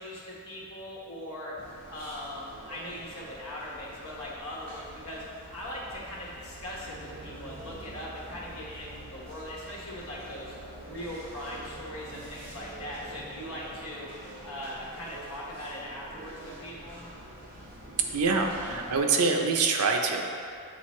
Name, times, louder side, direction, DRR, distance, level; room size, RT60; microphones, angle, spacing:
voice 1, 0.0-1.5 1.9-5.2 5.5-10.5 10.8-14.1 14.4-17.1, left 1 dB, 80° left, -5 dB, 1.5 m, -40 dB
sound 1, 1.6-19.0, right 1 dB, 40° right, 1.1 m, -46 dB
voice 2, 18.1-20.2, right 4 dB, 85° right, 3 dB, 0.6 m, -25 dB
8.2 x 3.9 x 3.2 m, 2.4 s
head